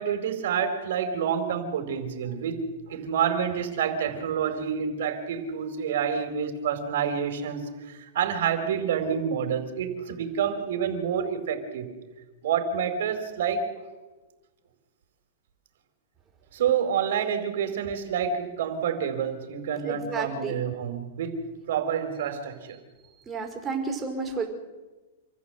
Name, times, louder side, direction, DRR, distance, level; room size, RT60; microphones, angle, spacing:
voice 1, 0.0-2.6 2.9-11.9 12.4-13.6 16.5-21.4 21.7-22.8, right 7 dB, 70° right, 7 dB, 4.7 m, -28 dB
voice 2, 19.9-20.6 23.3-24.5, right 4 dB, 20° right, 2 dB, 5.3 m, -31 dB
27.5 x 15.0 x 8.1 m, 1.2 s
hypercardioid pair, 140°, 0 cm